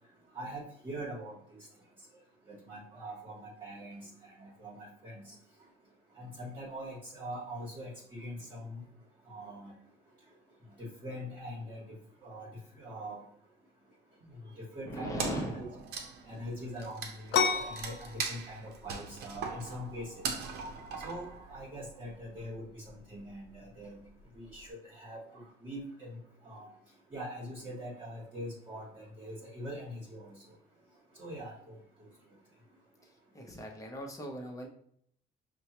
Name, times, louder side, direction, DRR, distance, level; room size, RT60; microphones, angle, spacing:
voice 1, 0.3-1.6 2.5-5.3 6.2-8.8 9.3-9.7 10.8-12.0 12.2-12.5 12.7-13.2 14.3-15.3 15.5-15.6 16.3-20.3 21.0-24.0 24.3-26.7 27.1-30.4 31.1-32.1, equal, 30° right, -5 dB, 1.2 m, -43 dB
voice 2, 14.8-15.8 33.0-34.7, equal, 20° left, 1 dB, 0.9 m, -39 dB
Wood, 15.2-21.9, right 5 dB, 75° right, 0.7 m, -40 dB
sound 1, 17.3-24.7, left 6 dB, 75° left, 0.5 m, -37 dB
5.3 x 2.2 x 3.0 m, 0.66 s
cardioid pair, 110°, 17 cm